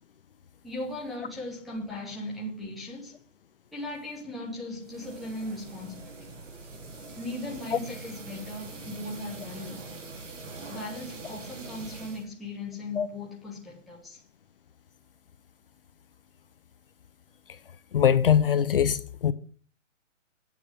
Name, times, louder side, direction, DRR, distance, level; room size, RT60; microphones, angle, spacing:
voice 1, 0.6-3.2 3.7-6.4 7.2-9.9 10.7-14.2, left 1 dB, ahead, 0.6 m, -38 dB
sound 1, 4.8-12.3, right 3 dB, 75° right, 3.4 m, -43 dB
voice 2, 17.9-19.3, left 8 dB, 45° left, 0.6 m, -22 dB
8.9 x 5.2 x 7.4 m
hypercardioid pair, 165°, 38 cm